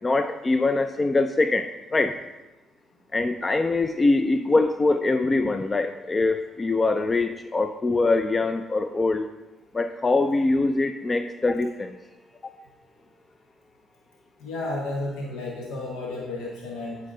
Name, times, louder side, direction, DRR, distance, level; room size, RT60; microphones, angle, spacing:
voice 1, 0.0-2.2 3.1-9.3 9.7-12.0 12.4-12.5, left 3 dB, 30° left, 9 dB, 0.4 m, -23 dB
voice 2, 14.4-17.0, left 2 dB, 85° left, -1 dB, 1.0 m, -32 dB
8.3 x 5.6 x 3.7 m, 1.1 s
supercardioid pair, 70°, 0 cm